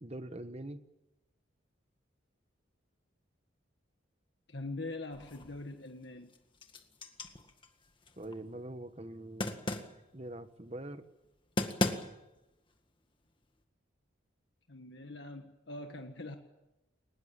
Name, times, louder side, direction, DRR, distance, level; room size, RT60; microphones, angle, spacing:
voice 1, 0.0-0.8 8.2-9.6 10.1-11.0, right 1 dB, 35° right, 10 dB, 1.3 m, -43 dB
voice 2, 4.5-6.3 14.7-16.4, left 2 dB, 65° left, 5 dB, 1.6 m, -43 dB
sound 1, 5.1-5.7 6.1-8.3 9.4-10.0 11.2-11.3 11.6-12.4, left 1 dB, 25° left, 1.8 m, -36 dB
22.0 x 20.5 x 8.7 m, 0.97 s
head